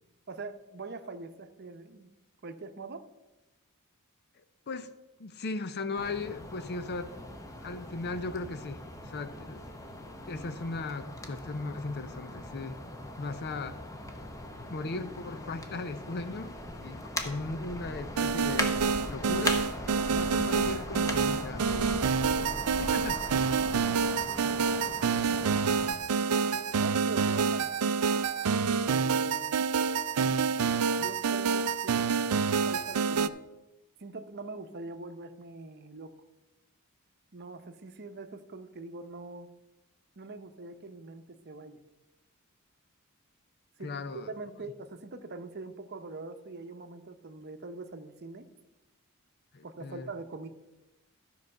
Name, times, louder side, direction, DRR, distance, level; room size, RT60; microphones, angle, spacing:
voice 1, 0.3-2.1 2.4-3.1 25.3-26.1 26.5-27.7 28.9-29.5 31.0-32.1 32.6-33.4 34.0-36.1 37.3-39.5 40.2-41.8 43.8-43.9 44.3-48.5 49.6-50.5, right 3 dB, 50° right, 9 dB, 0.8 m, -43 dB
voice 2, 5.2-7.2 7.6-9.7 10.3-12.8 13.2-13.8 14.7-16.5 16.8-18.8 19.1-19.6 20.1-22.4 22.8-23.3 24.5-24.7 43.8-44.3 49.5-50.1, left 3 dB, 50° left, 11 dB, 0.6 m, -37 dB
sound 1, 6.0-25.9, left 1 dB, 15° left, 1.0 m, -40 dB
sound 2, 18.2-33.3, right 5 dB, 85° right, 0.4 m, -27 dB
13.0 x 4.8 x 6.6 m, 1.0 s
head